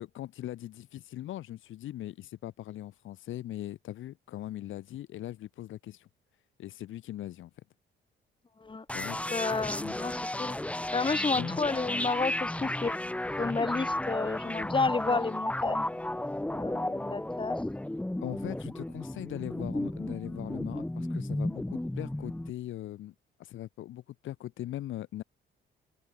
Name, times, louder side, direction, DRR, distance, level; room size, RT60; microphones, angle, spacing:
voice 1, 0.0-6.1 6.6-7.5 8.9-9.2 9.8-10.0 11.3-11.6 18.2-23.1 23.4-25.2, left 13 dB, 80° left, 2.6 m, -40 dB
sound 1, 8.9-22.5, left 1 dB, 5° left, 1.1 m, -33 dB
voice 2, 9.3-10.6 10.9-13.0 13.4-15.9 16.5-17.6, left 4 dB, 25° left, 3.6 m, -31 dB
cardioid pair, 90°, 20 cm